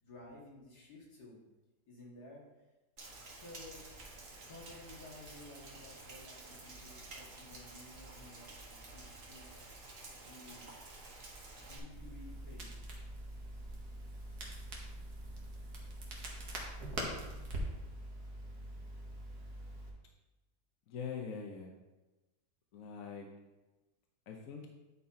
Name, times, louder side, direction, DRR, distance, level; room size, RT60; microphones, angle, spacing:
voice 1, 0.0-1.4 1.9-2.4 3.3-3.9 4.4-9.5 10.2-11.2 11.5-12.9, left 2 dB, 85° left, -4 dB, 2.4 m, -54 dB
Rain, 3.0-11.8, right 2 dB, 55° right, 1.7 m, -51 dB
Crackle, 11.9-19.9, right 1 dB, 80° right, 1.9 m, -43 dB
voice 2, 20.9-21.7 22.7-23.3 24.3-24.7, left 6 dB, 65° left, 1 dB, 1.2 m, -43 dB
9.5 x 4.2 x 4.3 m, 1.1 s
omnidirectional pair, 1.6 m